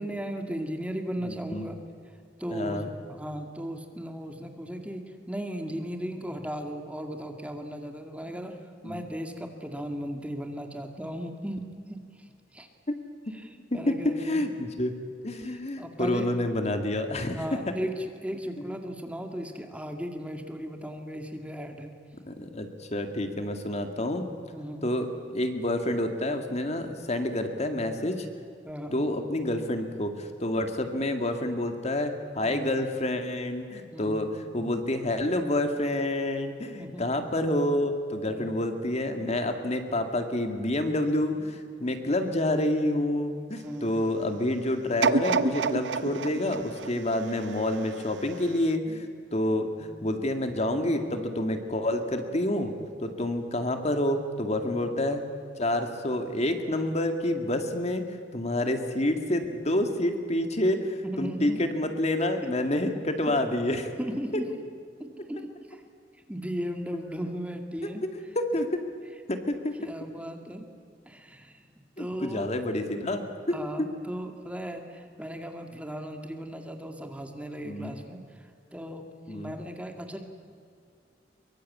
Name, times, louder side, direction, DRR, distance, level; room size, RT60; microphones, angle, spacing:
voice 1, 0.0-1.8 2.4-8.6 8.8-11.6 11.9-12.0 12.5-12.7 13.3-14.4 15.4-16.3 17.4-21.9 24.5-24.9 28.6-29.0 30.6-30.7 32.4-32.7 33.9-34.2 34.6-34.7 36.8-37.1 38.3-38.5 43.6-44.0 54.6-54.8 61.0-61.6 62.4-62.5 63.3-63.4 64.0-64.5 65.0-65.8 66.3-68.0 69.8-70.7 71.1-71.7 72.0-72.6 73.5-78.2 78.7-80.3, equal, 10° right, 4 dB, 2.1 m, -36 dB
voice 2, 1.2-1.6 2.5-2.9 8.8-9.1 12.9-13.0 13.7-14.9 15.2-17.7 22.2-24.3 24.8-28.3 28.9-52.7 53.0-55.2 55.6-58.0 58.3-63.9 67.8-68.8 69.3-69.8 72.0-73.6 77.6-78.0 79.3-79.5, left 1 dB, 40° left, 6 dB, 2.2 m, -28 dB
sound 1, 45.0-48.1 48.6-48.7, right 4 dB, 80° right, 0.9 m, -28 dB
23.5 x 23.5 x 8.6 m, 2.3 s
head